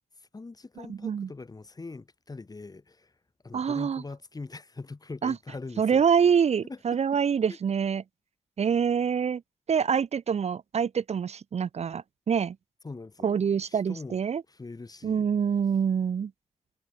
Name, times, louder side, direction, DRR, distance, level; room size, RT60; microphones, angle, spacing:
voice 1, 0.0-3.2 3.4-6.0 6.7-7.0 7.5-7.6 12.8-14.2 14.5-15.3, left 3 dB, 30° left, 3.5 m, -42 dB
voice 2, 0.9-1.3 3.5-4.0 5.2-5.3 5.8-8.0 8.6-9.4 9.7-12.6 13.2-14.4 15.0-16.3, right 7 dB, 65° right, 0.8 m, -25 dB
wide cardioid pair, 105°, 12 cm